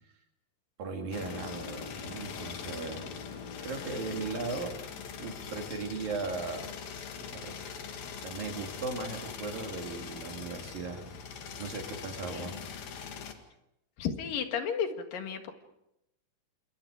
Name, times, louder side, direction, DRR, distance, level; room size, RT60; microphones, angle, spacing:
voice 1, 0.8-3.0 3.3-4.8 5.1-6.7 7.2-7.6 8.1-11.0 11.6-12.6, right 4 dB, 75° right, 3 dB, 4.5 m, -37 dB
sound 1, 1.1-13.3, left 6 dB, 90° left, 4.0 m, -42 dB
voice 2, 12.3-12.6 14.0-15.5, left 7 dB, 70° left, 6 dB, 3.5 m, -33 dB
28.5 x 27.5 x 5.0 m, 0.82 s
omnidirectional pair, 4.1 m